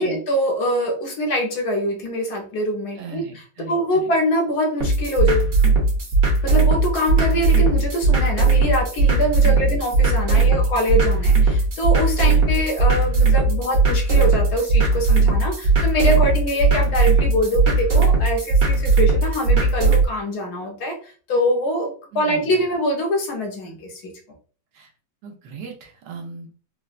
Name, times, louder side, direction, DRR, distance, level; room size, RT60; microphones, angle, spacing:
voice 1, 0.0-3.2 3.7-5.5 6.4-24.1, equal, 65° left, 1 dB, 1.3 m, -24 dB
voice 2, 2.9-4.1 9.4-9.8 10.4-10.7 12.3-12.4 16.1-16.3 16.7-16.8 22.1-22.6 24.7-24.9 25.2-26.5, right 6 dB, 80° right, 2 dB, 1.4 m, -38 dB
sound 1, 4.8-20.1, right 3 dB, 60° right, 1.4 m, -18 dB
4.0 x 2.1 x 2.4 m, 0.40 s
omnidirectional pair, 1.9 m